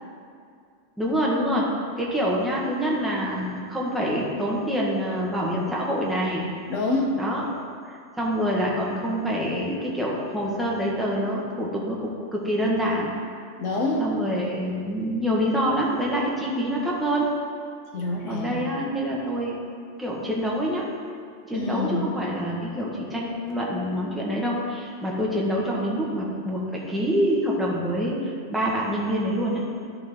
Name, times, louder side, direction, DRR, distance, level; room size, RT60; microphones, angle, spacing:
voice 1, 1.0-6.5 7.2-7.5 7.8-13.2 14.0-17.3 18.3-19.6 20.0-20.9 21.5-29.9, equal, ahead, -4 dB, 1.2 m, -26 dB
voice 2, 6.7-7.2 13.6-14.1 17.9-18.6 21.5-22.0, left 2 dB, 85° left, -1 dB, 1.5 m, -26 dB
11.5 x 6.1 x 3.6 m, 2.3 s
omnidirectional pair, 1.3 m